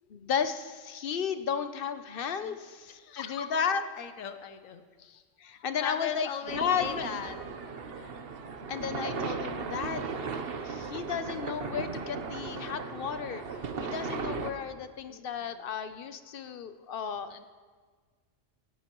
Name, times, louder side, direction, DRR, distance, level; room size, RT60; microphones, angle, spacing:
voice 1, 0.1-3.8 5.4-7.1 8.0-8.1 8.7-10.2 10.6-17.5, left 7 dB, 55° left, 10 dB, 0.7 m, -34 dB
voice 2, 2.9-3.5 4.0-5.2 5.8-7.4 15.1-15.6 17.3-17.5, left 8 dB, 90° left, 9 dB, 1.2 m, -39 dB
sound 1, 6.5-14.5, right 5 dB, 55° right, 1.0 m, -36 dB
17.5 x 14.0 x 3.0 m, 1.5 s
omnidirectional pair, 1.3 m